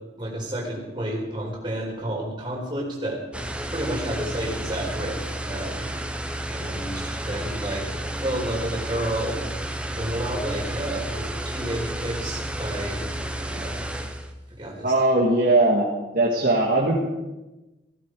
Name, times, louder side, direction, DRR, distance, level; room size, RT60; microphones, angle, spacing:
voice 1, 0.2-3.2 3.7-5.9 6.5-7.9 8.2-9.4 9.9-13.1 13.4-13.8 14.6-14.9, right 1 dB, 25° right, -3 dB, 4.7 m, -30 dB
sound 1, 3.3-14.3, right 1 dB, 5° right, 1.0 m, -31 dB
voice 2, 14.8-15.8 16.1-17.0, right 2 dB, 50° right, -3 dB, 2.2 m, -19 dB
16.0 x 15.0 x 5.0 m, 1.1 s
head